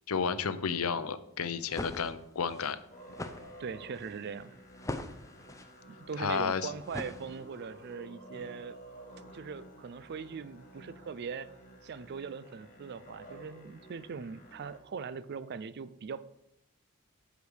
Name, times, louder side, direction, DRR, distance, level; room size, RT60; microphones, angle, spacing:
voice 1, 0.1-2.8 6.2-6.7, left 6 dB, 85° left, 12 dB, 0.7 m, -32 dB
sound 1, 1.5-7.7, left 1 dB, 15° left, 0.6 m, -43 dB
Musical instrument, 2.9-14.8, right 1 dB, 40° left, 1.9 m, -52 dB
voice 2, 3.6-4.5 6.1-8.8 9.3-11.5 11.8-16.2, right 5 dB, 50° right, 15 dB, 0.4 m, -40 dB
8.0 x 5.1 x 6.5 m, 0.78 s
head